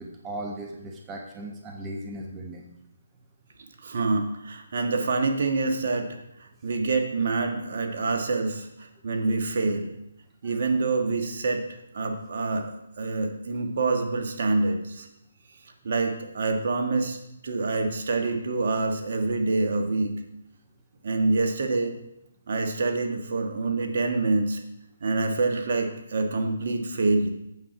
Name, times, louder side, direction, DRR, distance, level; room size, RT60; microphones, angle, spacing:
voice 1, 0.0-2.6 10.4-10.5 25.0-25.2, right 1 dB, 15° right, 0 dB, 1.0 m, -37 dB
voice 2, 3.8-9.9 10.4-11.6 11.9-15.1 15.8-17.2 17.4-20.1 21.0-21.9 22.5-24.6 25.0-27.3, right 3 dB, 60° right, 3 dB, 1.5 m, -26 dB
8.6 x 7.3 x 4.8 m, 0.80 s
hypercardioid pair, 150°, 0 cm